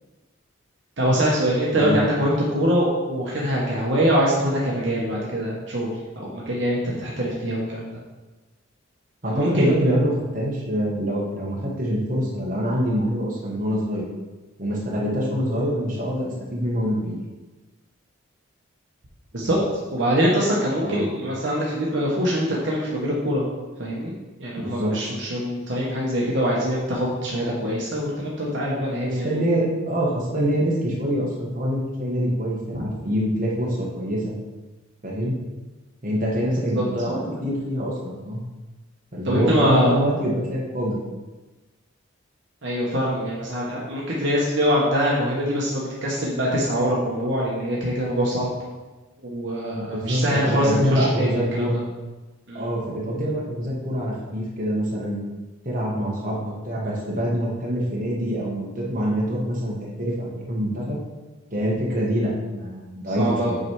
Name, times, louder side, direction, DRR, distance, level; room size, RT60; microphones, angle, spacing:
voice 1, 1.0-8.0 9.3-9.7 19.3-19.6 19.9-23.4 23.8-24.1 24.4-29.4 32.7-32.8 36.7-37.4 39.2-40.0 42.6-48.5 49.2-51.7 52.5-52.7 63.2-63.6, equal, 60° right, -5 dB, 1.1 m, -24 dB
voice 2, 9.2-14.1 14.6-17.2 20.8-21.0 24.6-24.9 29.2-34.4 35.0-35.4 36.0-38.4 39.1-41.0 49.9-51.8 52.5-55.2 55.6-61.0 61.5-63.6, equal, 40° right, -4 dB, 1.5 m, -25 dB
8.3 x 3.3 x 4.7 m, 1.2 s
head